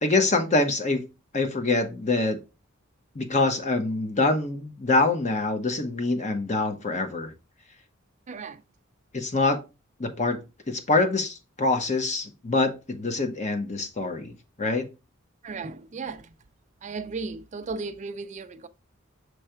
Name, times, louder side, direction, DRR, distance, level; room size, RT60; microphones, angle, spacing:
voice 1, 0.0-1.0 1.3-2.4 3.1-7.3 9.1-9.6 10.0-10.4 10.7-14.3 14.6-14.9, left 3 dB, 35° left, 1.0 m, -25 dB
voice 2, 8.3-8.6 15.4-16.2 16.8-18.7, right 4 dB, 35° right, 0.4 m, -35 dB
6.5 x 3.3 x 4.4 m
head